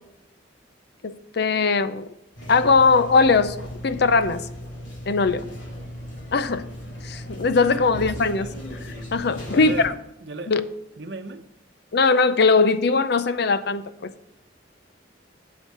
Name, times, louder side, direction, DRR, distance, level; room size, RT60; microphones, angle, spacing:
voice 1, 1.0-2.1 2.5-4.5 5.1-5.5 6.3-6.7 7.0-8.5 9.1-9.9 10.5-10.7 11.9-14.1, left 4 dB, 60° left, 0.6 m, -20 dB
sound 1, 2.4-9.9, equal, 80° left, 3.7 m, -37 dB
voice 2, 7.8-8.6 9.5-10.5 11.0-11.4, right 3 dB, 65° right, 0.9 m, -36 dB
8.2 x 7.6 x 4.7 m
head